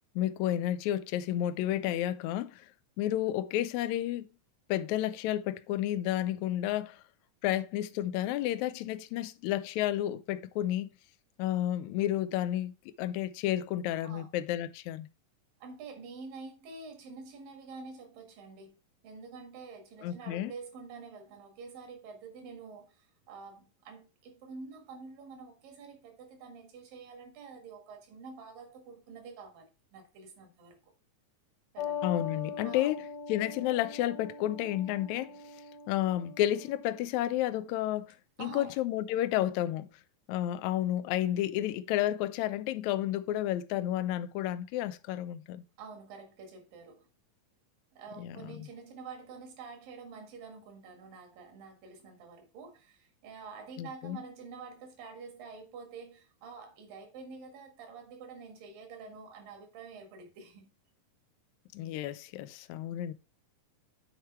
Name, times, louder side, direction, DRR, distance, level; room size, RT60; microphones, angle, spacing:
voice 1, 0.1-2.7 3.0-4.3 4.7-7.0 7.4-10.9 11.4-12.7 13.0-15.1 20.0-20.5 32.0-33.0 33.3-35.4 35.9-39.9 40.3-45.6 48.2-48.7 53.8-54.2 61.7-63.1, left 13 dB, 85° left, 1.7 m, -31 dB
voice 2, 15.6-30.9 31.7-32.0 32.6-33.0 38.4-38.8 45.8-47.1 47.9-60.7, right 4 dB, 80° right, 3.5 m, -48 dB
sound 1, 31.8-37.0, left 7 dB, 60° left, 1.9 m, -41 dB
8.2 x 4.7 x 4.3 m
omnidirectional pair, 3.9 m